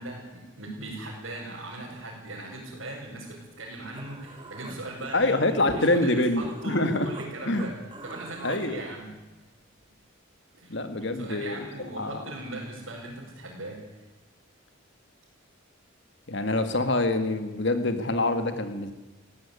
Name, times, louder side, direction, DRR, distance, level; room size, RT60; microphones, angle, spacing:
voice 1, 0.0-7.8 8.0-9.2 10.6-10.8 11.2-13.8, right 2 dB, 65° right, -5 dB, 5.4 m, -39 dB
Human voice, 3.9-7.3 7.5-8.6, right 1 dB, 25° right, 2.3 m, -43 dB
voice 2, 5.1-7.1 7.5-7.7 8.4-8.8 10.7-11.7 12.0-12.2 16.3-18.9, left 2 dB, 55° left, 9 dB, 1.9 m, -25 dB
19.5 x 15.5 x 9.6 m, 1.1 s
head